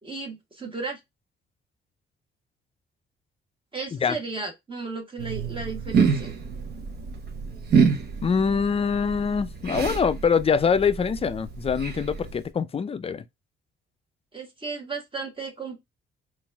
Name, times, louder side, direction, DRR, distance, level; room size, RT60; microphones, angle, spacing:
voice 1, 0.0-1.0 3.7-6.3 14.3-15.8, right 4 dB, 25° right, 1.4 m, -34 dB
sound 1, 5.2-12.5, right 5 dB, 55° right, 0.9 m, -27 dB
voice 2, 8.2-13.2, left 6 dB, 30° left, 0.4 m, -24 dB
4.0 x 2.5 x 3.4 m
cardioid pair, 90°, 20 cm